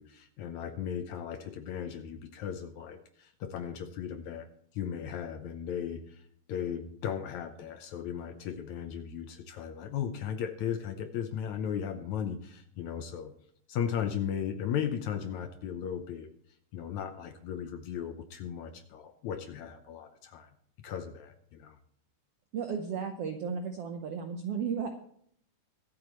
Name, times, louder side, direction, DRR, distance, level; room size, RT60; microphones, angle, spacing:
voice 1, 0.0-4.5 4.7-6.2 6.5-13.3 13.7-16.3 16.7-20.5 20.8-21.8, left 8 dB, 70° left, 8 dB, 1.9 m, -36 dB
voice 2, 22.5-24.9, right 6 dB, 80° right, 5 dB, 1.4 m, -34 dB
24.0 x 8.6 x 3.1 m, 0.65 s
omnidirectional pair, 3.9 m